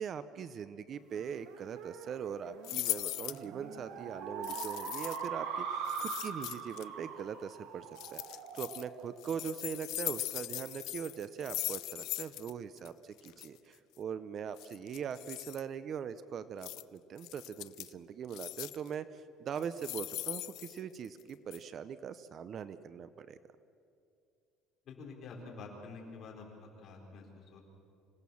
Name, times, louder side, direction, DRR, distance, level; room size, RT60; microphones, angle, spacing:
voice 1, 0.0-23.4, right 7 dB, 35° right, 14 dB, 0.6 m, -41 dB
sound 1, 1.1-10.0, right 6 dB, 70° right, 1.9 m, -42 dB
sound 2, 2.6-3.4 4.4-5.3 5.9-6.8 8.0-8.8 9.2-12.5 12.8-12.9 13.2-13.5 14.6-15.6 16.6-16.8 17.2-17.9 18.3-18.9 19.6-21.2 21.5-21.6, left 17 dB, 65° left, 0.5 m, -40 dB
voice 2, 24.9-27.6, left 4 dB, 45° left, 0 dB, 4.5 m, -48 dB
26.0 x 17.5 x 7.1 m, 2.5 s
cardioid pair, 150°, 0 cm